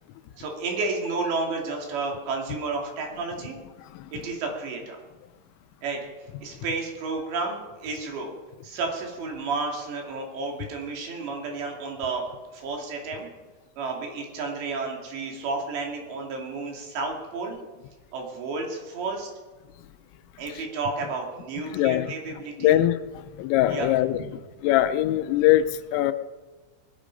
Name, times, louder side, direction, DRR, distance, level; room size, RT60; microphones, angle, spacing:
voice 1, 0.4-3.6 4.1-5.0 5.8-6.0 6.4-8.3 8.6-12.2 12.5-13.3 13.8-17.6 18.1-19.3 20.4-22.8 23.7-23.9 24.2-24.3, right 3 dB, 65° right, 1 dB, 4.6 m, -31 dB
voice 2, 21.7-22.1 22.6-24.2 24.6-26.1, left 13 dB, 85° left, 11 dB, 3.3 m, -22 dB
20.0 x 13.0 x 5.2 m, 1.3 s
omnidirectional pair, 5.8 m